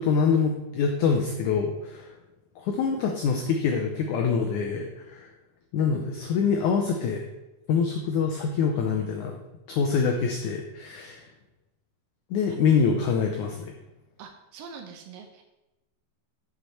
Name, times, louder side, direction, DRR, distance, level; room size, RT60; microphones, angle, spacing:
voice 1, 0.0-2.1 2.6-5.3 5.7-7.2 7.7-9.4 9.7-11.2 12.3-13.7, left 6 dB, 85° left, 3 dB, 1.7 m, -25 dB
voice 2, 14.2-15.4, right 6 dB, 75° right, 5 dB, 2.2 m, -44 dB
8.1 x 6.8 x 4.3 m, 1.0 s
omnidirectional pair, 4.4 m